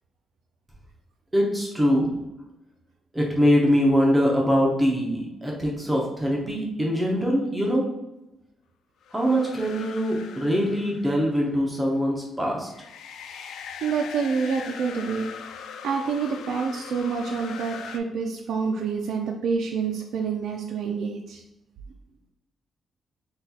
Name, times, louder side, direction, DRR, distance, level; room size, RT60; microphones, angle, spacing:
voice 1, 1.3-2.1 3.1-7.9 9.1-12.7, equal, 5° right, -2 dB, 0.6 m, -23 dB
sound 1, 9.0-11.5 12.7-18.0, left 7 dB, 85° left, 0.3 m, -41 dB
voice 2, 13.8-15.3 15.8-21.4, right 5 dB, 70° right, 1 dB, 0.4 m, -27 dB
5.9 x 2.3 x 2.7 m, 0.94 s
cardioid pair, 155°, 0 cm